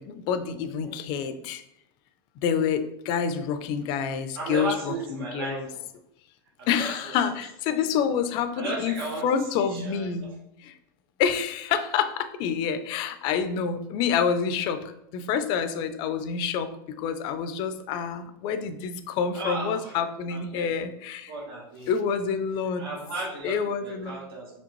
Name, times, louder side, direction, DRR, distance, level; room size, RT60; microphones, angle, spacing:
voice 1, 0.0-1.6 2.4-5.7 6.7-9.0 9.2-10.4 10.6-10.7 11.2-21.3 21.9-22.9 23.4-24.2, left 7 dB, 40° left, 10 dB, 0.4 m, -28 dB
voice 2, 4.3-5.8 6.6-7.1 8.6-10.3 19.3-20.0 20.3-20.9 21.3-22.0 22.8-24.5, right 3 dB, 85° right, -4 dB, 1.3 m, -35 dB
5.1 x 3.2 x 3.0 m, 0.80 s
supercardioid pair, 150°, 12 cm